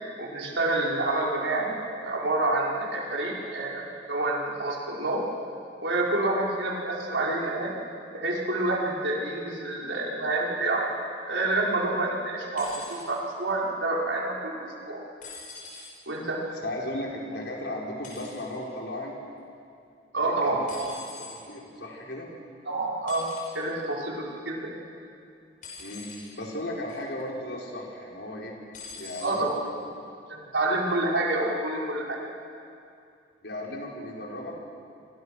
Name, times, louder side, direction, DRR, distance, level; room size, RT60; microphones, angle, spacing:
voice 1, 0.2-1.7 2.0-5.2 5.8-7.7 8.1-10.9 11.3-15.0 16.1-16.4 20.1-20.9 22.7-23.2 23.5-24.7 29.2-29.6 30.3-32.2, right 2 dB, 90° right, -3 dB, 5.4 m, -28 dB
sound 1, 12.6-13.0 15.2-15.9 18.0-18.4 20.7-21.4 23.1-23.6 25.6-26.3 26.9-27.2 28.7-29.3 30.3-30.4, left 4 dB, 45° left, 6.9 m, -43 dB
voice 2, 16.6-19.4 20.2-20.7 21.2-22.3 25.8-28.5 29.0-29.7 33.4-34.6, left 1 dB, 70° left, -2 dB, 5.2 m, -36 dB
27.5 x 25.5 x 6.5 m, 2.5 s
head